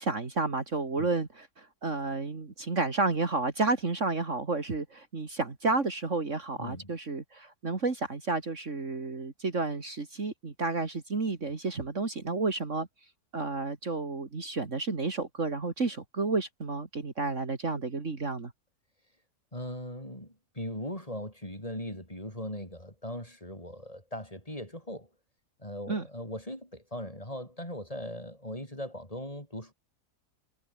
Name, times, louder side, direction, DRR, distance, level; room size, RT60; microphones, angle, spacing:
voice 1, 0.0-12.9 13.3-18.5 25.9-26.1, right 3 dB, 50° right, 2.8 m, -31 dB
voice 2, 6.6-6.9 19.5-25.1 25.6-29.7, left 1 dB, 20° left, 7.5 m, -39 dB
omnidirectional pair, 1.7 m